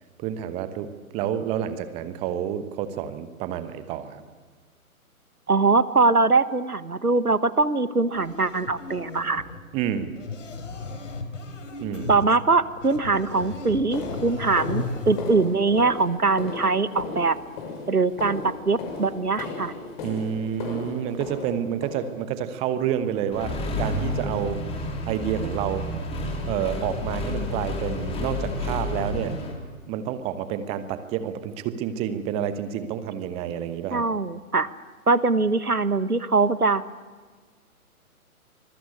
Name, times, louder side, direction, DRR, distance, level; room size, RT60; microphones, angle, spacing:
voice 1, 0.2-4.2 9.7-10.1 11.8-12.1 20.0-24.6 25.0-25.9 26.4-29.4 29.9-34.1, right 9 dB, 15° right, 12 dB, 1.0 m, -29 dB
voice 2, 5.5-9.4 12.1-17.4 17.9-19.7 33.9-34.7 35.1-36.8, right 3 dB, 85° right, 15 dB, 1.5 m, -22 dB
sound 1, 8.1-15.6, left 3 dB, 55° left, 4.3 m, -36 dB
sound 2, 12.6-12.8 13.3-22.5 23.0-23.4 23.6-23.8 24.2-24.4 24.8-24.9 25.4-25.5, left 4 dB, 35° left, 6.0 m, -37 dB
Accelerating revving vroom, 23.3-29.5, left 1 dB, 15° left, 3.4 m, -30 dB
25.5 x 21.5 x 8.5 m, 1.5 s
figure-of-eight pair, 125°, 44 cm